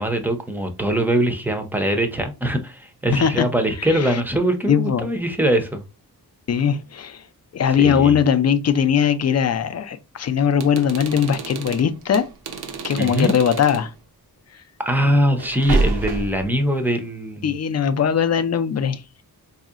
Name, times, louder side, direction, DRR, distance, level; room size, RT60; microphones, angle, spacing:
voice 1, 0.0-5.8 7.8-8.2 13.0-13.3 14.8-17.5, right 1 dB, 5° right, 0.5 m, -22 dB
voice 2, 3.1-3.5 3.8-4.2 4.7-5.1 6.5-7.2 7.5-12.3 12.8-13.9 17.4-19.0, left 7 dB, 45° left, 0.4 m, -20 dB
sound 1, 10.5-13.9 15.4-16.5, right 3 dB, 90° right, 0.7 m, -27 dB
4.0 x 2.7 x 2.4 m
wide cardioid pair, 135°, 38 cm